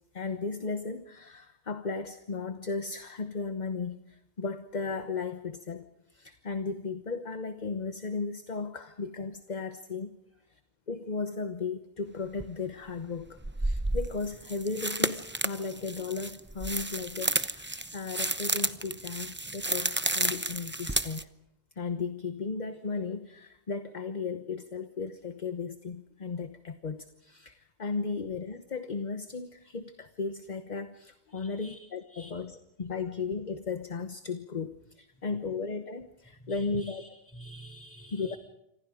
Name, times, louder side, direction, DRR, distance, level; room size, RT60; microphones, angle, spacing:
voice 1, 0.1-5.9 6.1-10.1 10.9-21.2 21.8-37.0 38.1-38.4, left 4 dB, 40° left, 9 dB, 1.1 m, -35 dB
sound 1, 12.4-12.5 13.4-21.2, right 2 dB, 10° right, 0.6 m, -31 dB
voice 2, 31.3-32.3 35.3-35.4 36.4-38.4, right 1 dB, 10° left, 3 dB, 6.4 m, -50 dB
28.5 x 25.5 x 5.0 m, 0.86 s
omnidirectional pair, 1.2 m